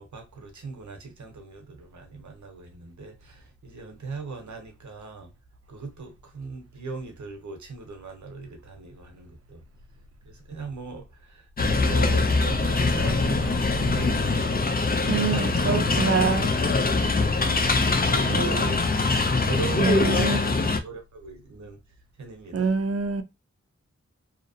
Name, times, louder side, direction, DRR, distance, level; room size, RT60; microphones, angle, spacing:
voice 1, 0.0-5.3 5.7-9.6 10.2-14.7 15.1-18.8 19.3-21.8 22.2-22.7, right 4 dB, 75° right, 0.9 m, -39 dB
sound 1, 11.6-20.8, left 3 dB, 30° left, 0.5 m, -23 dB
voice 2, 15.1-16.5 18.3-18.7 19.8-20.4 22.5-23.2, right 5 dB, 55° right, 0.6 m, -25 dB
2.8 x 2.0 x 2.7 m
cardioid pair, 45°, 29 cm